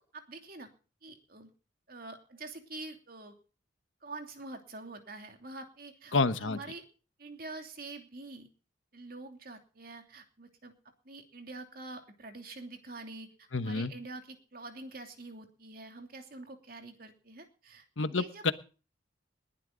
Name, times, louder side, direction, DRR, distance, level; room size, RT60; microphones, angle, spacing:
voice 1, 0.1-0.7 1.0-1.5 1.9-3.4 4.0-6.9 7.2-8.5 8.9-10.7 11.0-18.5, right 2 dB, 50° right, 5 dB, 2.9 m, -46 dB
voice 2, 6.1-6.6 13.5-13.9 18.0-18.5, left 3 dB, 85° left, 12 dB, 1.1 m, -28 dB
20.5 x 12.0 x 3.9 m, 0.37 s
head